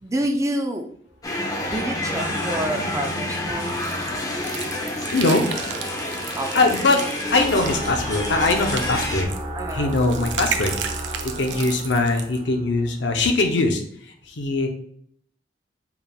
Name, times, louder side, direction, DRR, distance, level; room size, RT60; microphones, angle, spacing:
voice 1, 0.0-0.9 1.6-3.9 6.4-6.5 9.5-10.0 11.4-11.7, right 1 dB, 15° right, 4 dB, 0.4 m, -28 dB
sound 1, 1.2-9.2, left 1 dB, 20° left, 0.6 m, -28 dB
sound 2, 3.7-12.4, right 7 dB, 90° right, 0.5 m, -34 dB
voice 2, 5.1-5.5 6.5-7.0 7.3-9.3 9.7-10.8 11.4-13.8 14.3-14.7, left 2 dB, 75° left, 4 dB, 0.7 m, -21 dB
sound 3, 7.2-13.3, right 1 dB, 40° right, 1.0 m, -34 dB
4.7 x 3.4 x 2.3 m, 0.65 s
head